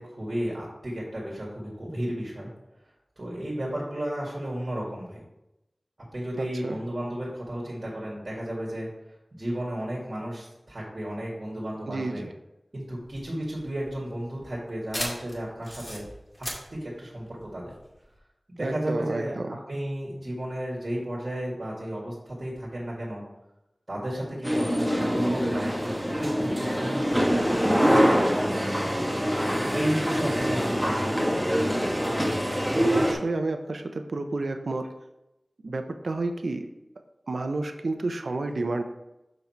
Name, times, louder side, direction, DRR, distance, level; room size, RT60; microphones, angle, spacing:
voice 1, 0.0-2.5 3.2-5.2 6.1-8.9 9.3-12.2 12.7-16.1 16.7-17.7 18.5-19.4 19.7-23.2 23.9-28.2 29.7-31.7, right 1 dB, 50° right, -5 dB, 2.0 m, -33 dB
voice 2, 6.4-6.8 11.9-12.3 18.6-19.6 27.8-28.3 32.7-34.9 35.6-36.7 37.3-38.8, right 2 dB, 85° right, 6 dB, 0.6 m, -30 dB
sound 1, 13.0-18.2, equal, 15° left, 2.3 m, -38 dB
sound 2, 24.4-33.1, equal, 5° right, 1.4 m, -24 dB
5.8 x 5.3 x 4.4 m, 0.91 s
wide cardioid pair, 50°, 0 cm